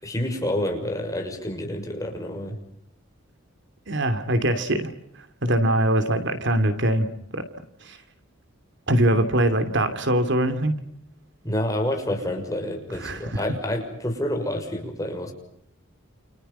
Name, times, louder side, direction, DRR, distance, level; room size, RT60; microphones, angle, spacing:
voice 1, 0.0-2.6 11.4-15.3, left 1 dB, 15° left, 3 dB, 6.5 m, -28 dB
voice 2, 3.9-4.9 5.4-7.4 7.8-8.0 8.9-10.7 12.9-13.4, right 1 dB, 60° right, 10 dB, 2.9 m, -22 dB
30.0 x 29.5 x 5.7 m, 0.73 s
head